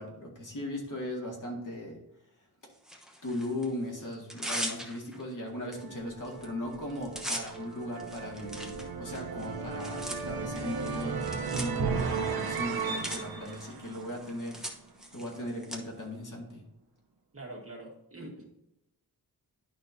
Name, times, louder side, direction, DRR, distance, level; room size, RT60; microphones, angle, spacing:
voice 1, 0.0-2.0 3.2-14.6 15.1-16.6, left 1 dB, 50° left, -1 dB, 2.1 m, -38 dB
Tearing, 2.8-3.7 4.1-5.2 5.7-5.8 6.1-6.5 6.7-15.8, equal, ahead, 1.0 m, -41 dB
sound 1, 5.6-14.7, right 5 dB, 65° right, 0.9 m, -35 dB
voice 2, 17.3-18.4, right 1 dB, 35° right, -1 dB, 1.8 m, -45 dB
11.0 x 5.5 x 2.7 m, 0.83 s
wide cardioid pair, 130°, 39 cm